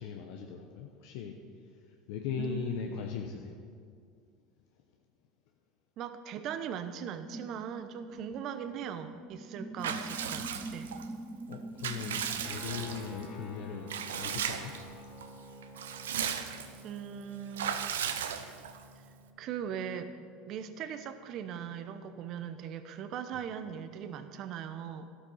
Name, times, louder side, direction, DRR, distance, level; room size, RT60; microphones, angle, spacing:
voice 1, 0.0-1.3 2.1-3.5 11.5-14.7, left 7 dB, 70° left, 2 dB, 0.9 m, -39 dB
voice 2, 2.3-3.0 6.0-10.9 16.8-18.0 19.4-20.1 20.5-25.1, right 8 dB, 55° right, 10 dB, 0.8 m, -40 dB
sound 1, 7.3-14.9, right 2 dB, 10° right, 0.5 m, -45 dB
Water / Bathtub (filling or washing) / Liquid, 9.8-11.1 11.5-13.2 13.9-14.8 15.2-15.3 15.6-16.8 17.6-18.8, right 8 dB, 90° right, 0.7 m, -36 dB
Guitar, 12.4-22.2, left 1 dB, 50° left, 2.7 m, -52 dB
11.5 x 8.4 x 5.6 m, 2.2 s
hypercardioid pair, 95°, 0 cm